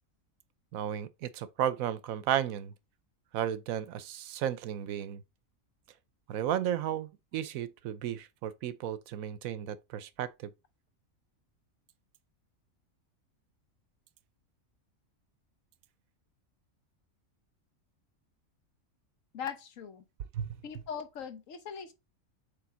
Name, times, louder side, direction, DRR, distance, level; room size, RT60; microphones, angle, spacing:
voice 1, 0.7-2.7 3.3-5.2 6.3-10.5 20.3-20.6, right 10 dB, 80° right, 1.0 m, -34 dB
voice 2, 19.3-20.0 20.6-21.9, left 7 dB, 70° left, 1.3 m, -40 dB
7.6 x 3.5 x 3.8 m
omnidirectional pair, 1.4 m